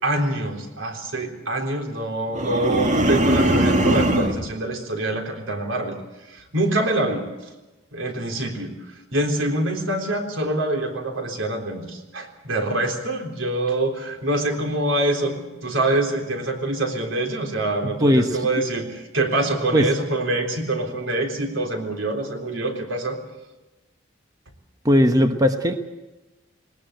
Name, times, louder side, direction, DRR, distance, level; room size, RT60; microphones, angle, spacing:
voice 1, 0.0-6.0 6.3-7.3 7.9-8.7 9.1-23.2, right 1 dB, 85° right, 3 dB, 3.8 m, -25 dB
sound 1, 2.3-4.5, right 1 dB, 40° right, 1.9 m, -20 dB
voice 2, 17.8-18.4 19.7-19.9 24.8-25.9, equal, 20° right, 7 dB, 1.1 m, -18 dB
20.0 x 20.0 x 7.9 m, 1.1 s
head